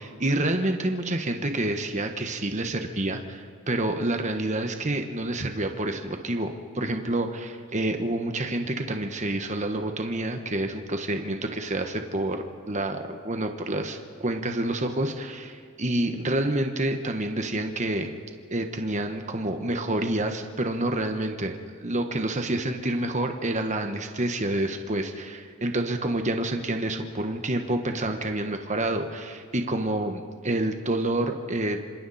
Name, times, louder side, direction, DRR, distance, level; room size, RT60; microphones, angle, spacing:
voice 1, 0.0-18.1 18.5-31.8, right 1 dB, 35° right, 5 dB, 1.4 m, -28 dB
27.0 x 26.5 x 4.3 m, 2.1 s
head